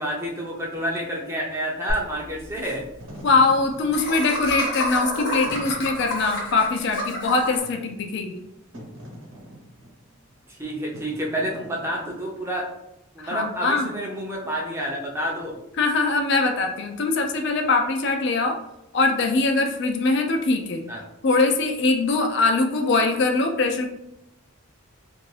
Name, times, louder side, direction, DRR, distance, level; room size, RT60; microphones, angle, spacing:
voice 1, 0.0-2.8 10.5-12.7 13.1-15.6 20.9-21.0, equal, 10° right, -2 dB, 0.5 m, -29 dB
Laughter, 1.9-2.0 2.2-2.3 2.5-2.7 3.9-7.6, left 1 dB, 85° left, 1.1 m, -29 dB
Wind / Fire, 2.9-12.3, equal, 70° right, 0.9 m, -44 dB
voice 2, 3.2-8.4 13.2-13.9 15.8-18.6 18.9-20.8 21.2-23.9, left 3 dB, 55° left, 4 dB, 0.4 m, -22 dB
2.6 x 2.5 x 3.2 m, 0.86 s
head